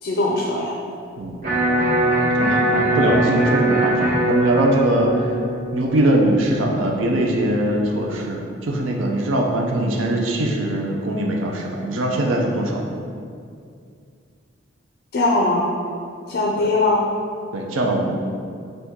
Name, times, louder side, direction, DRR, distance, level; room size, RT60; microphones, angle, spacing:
voice 1, 0.0-0.8 15.1-15.7 16.3-17.0, left 2 dB, 55° left, -2 dB, 0.4 m, -20 dB
Electric guitar, 1.4-7.5, right 1 dB, 40° right, 1.0 m, -22 dB
voice 2, 2.4-5.2 5.7-12.9 16.6-16.7 17.5-18.2, right 1 dB, 80° right, 0 dB, 0.5 m, -21 dB
4.3 x 2.6 x 3.6 m, 2.3 s
head